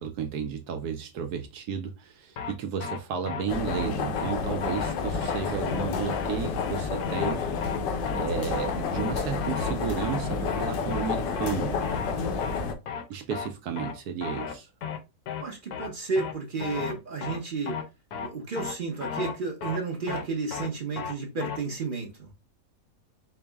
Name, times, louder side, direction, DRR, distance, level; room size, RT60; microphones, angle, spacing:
voice 1, 0.0-7.5 8.1-11.8 13.1-14.7, right 7 dB, 75° right, 1.0 m, -33 dB
sound 1, 2.4-2.5 2.8-3.0 3.3-3.4 3.7-3.9 4.2-4.3 4.6-4.9 5.2-5.4 5.7-5.8 6.1-6.3 6.6-6.7 7.0-7.3 7.6-7.8 8.1-8.2 8.5-8.7 9.0-9.1 9.4-9.7 10.0-10.2 10.5-10.6 10.9-11.1 11.4-11.5 11.8-12.1 12.4-12.6 12.9-13.0 13.3-13.5 13.8-13.9 14.2-14.5 14.8-15.0 15.3-15.4 15.7-15.9 16.2-16.3 16.6-16.9 17.2-17.4 17.7-17.8 18.1-18.3 18.6-18.7 19.0-19.3 19.6-19.8 20.1-20.2 20.5-20.7 21.0-21.1 21.4-21.6, left 7 dB, 70° left, 1.1 m, -34 dB
sound 2, 3.5-12.7, left 5 dB, 85° left, 1.3 m, -30 dB
voice 2, 15.4-17.8 18.2-22.3, right 4 dB, 50° right, 0.6 m, -32 dB
4.5 x 2.0 x 3.3 m
omnidirectional pair, 1.8 m